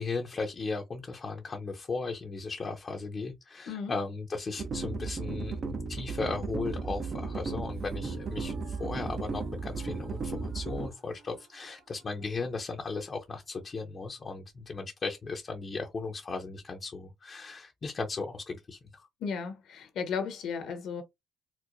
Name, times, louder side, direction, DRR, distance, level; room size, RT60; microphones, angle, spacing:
voice 1, 0.0-19.1, left 4 dB, 40° left, 0.6 m, -36 dB
sound 1, 4.6-10.9, right 4 dB, 50° right, 0.5 m, -35 dB
sound 2, 6.7-14.6, right 3 dB, 85° right, 1.4 m, -59 dB
voice 2, 19.2-21.0, left 6 dB, 80° left, 1.0 m, -34 dB
4.4 x 2.1 x 2.5 m
cardioid pair, 90°, 0 cm